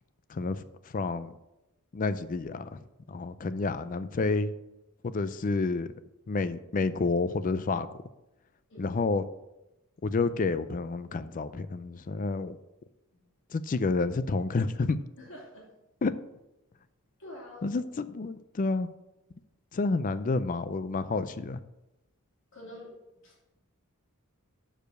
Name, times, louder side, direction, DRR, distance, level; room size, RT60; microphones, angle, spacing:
voice 1, 0.3-0.6 0.9-1.3 1.9-2.8 3.1-4.5 5.0-5.9 6.3-7.9 8.8-9.2 10.0-12.6 13.5-15.0 16.0-16.1 17.6-18.9 19.7-21.6, left 3 dB, 35° left, 14 dB, 0.4 m, -29 dB
voice 2, 15.2-15.7 17.2-17.8 22.5-22.9 23.2-23.4, left 1 dB, 60° left, -3 dB, 2.7 m, -46 dB
6.8 x 5.0 x 6.4 m, 0.93 s
head